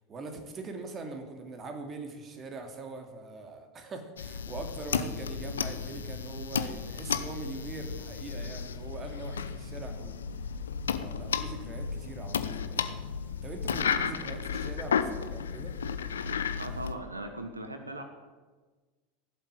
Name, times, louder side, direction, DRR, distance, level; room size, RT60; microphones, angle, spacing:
voice 1, 0.1-10.4 11.0-13.1 13.4-15.7, right 3 dB, 30° right, 5 dB, 2.9 m, -42 dB
sound 1, 4.2-17.0, left 6 dB, 75° left, 0.9 m, -33 dB
voice 2, 16.6-18.0, right 1 dB, 85° right, 7 dB, 1.3 m, -39 dB
16.5 x 7.9 x 9.1 m, 1.4 s
figure-of-eight pair, 80°, 0 cm